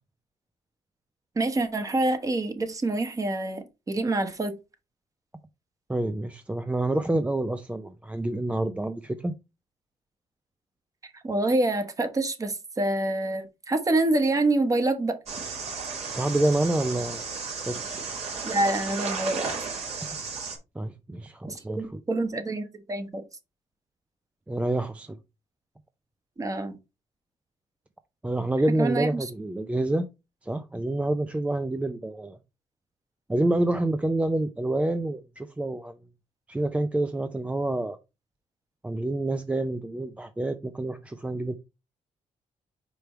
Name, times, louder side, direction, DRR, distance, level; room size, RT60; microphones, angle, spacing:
voice 1, 1.3-4.5 11.0-15.2 18.4-19.5 21.5-23.2 26.4-26.8 28.8-29.1, right 2 dB, 30° right, 1.3 m, -26 dB
voice 2, 5.9-9.3 16.1-17.2 17.7-18.0 20.8-22.0 24.5-25.2 28.2-30.1 30.4-32.4 33.3-35.9 36.5-38.0 38.8-41.5, right 1 dB, 10° right, 0.5 m, -27 dB
sound 1, 15.3-20.6, right 4 dB, 65° right, 2.8 m, -34 dB
5.1 x 4.7 x 4.4 m
cardioid pair, 105°, 12 cm